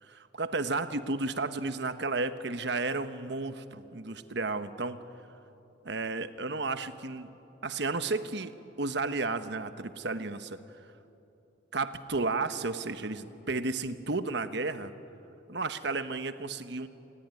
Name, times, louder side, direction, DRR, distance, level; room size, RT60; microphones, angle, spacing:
voice 1, 0.0-5.0 5.8-7.3 7.6-10.6 11.7-14.9 15.5-16.9, right 3 dB, 60° right, 11 dB, 1.1 m, -33 dB
29.0 x 19.5 x 9.7 m, 2.9 s
head